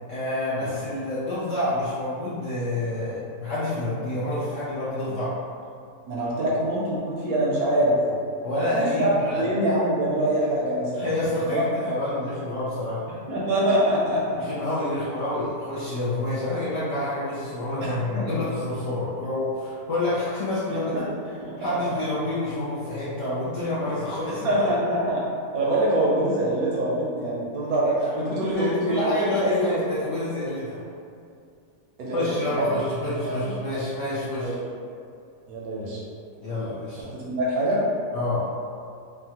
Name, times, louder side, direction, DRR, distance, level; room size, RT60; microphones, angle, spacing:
voice 1, 0.1-5.3 8.4-9.4 10.9-13.0 14.4-20.9 21.6-24.6 28.0-30.8 32.1-34.6 36.4-37.0 38.1-38.5, left 1 dB, 65° left, -10 dB, 0.8 m, -28 dB
voice 2, 6.1-8.0 8.7-9.1 9.4-11.6 13.3-14.4 17.8-18.3 20.9-21.0 21.4-21.5 24.4-25.3 25.5-29.8 32.0-32.7 33.2-33.5 34.4-34.6 35.5-36.0 37.1-37.8, right 1 dB, 70° right, -6 dB, 0.9 m, -25 dB
3.5 x 2.1 x 2.8 m, 2.4 s
omnidirectional pair, 1.8 m